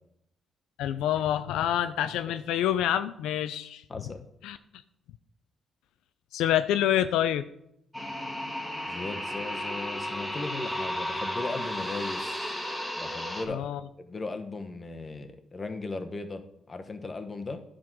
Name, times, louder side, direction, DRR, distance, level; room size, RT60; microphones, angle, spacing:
voice 1, 0.8-3.8 4.4-4.6 6.3-7.4 13.5-13.8, left 11 dB, 90° left, 12 dB, 0.3 m, -27 dB
voice 2, 3.9-4.2 8.9-12.6 13.0-13.7 14.0-17.6, left 3 dB, 30° left, 6 dB, 1.0 m, -37 dB
sound 1, 7.9-13.4, left 1 dB, 5° left, 1.3 m, -33 dB
10.5 x 3.8 x 6.1 m, 0.76 s
cardioid pair, 90°, 0 cm